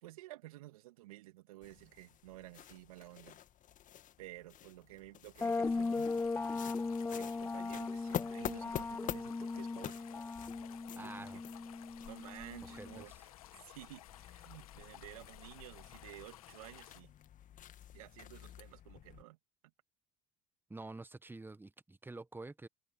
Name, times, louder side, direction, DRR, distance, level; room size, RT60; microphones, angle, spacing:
voice 1, 0.0-3.4 4.2-6.1 7.1-10.0 10.9-11.4 12.1-13.3 13.6-17.1 17.9-19.4, right 17 dB, 75° right, 2.8 m, -53 dB
sound 1, 1.6-19.2, left 11 dB, 45° left, 2.0 m, -48 dB
sound 2, 5.4-17.0, left 14 dB, 80° left, 1.6 m, -56 dB
sound 3, 5.4-13.0, left 3 dB, 10° left, 0.5 m, -38 dB
voice 2, 11.0-11.4 12.7-13.0 20.7-22.7, right 2 dB, 10° right, 1.5 m, -48 dB
hypercardioid pair, 70°, 18 cm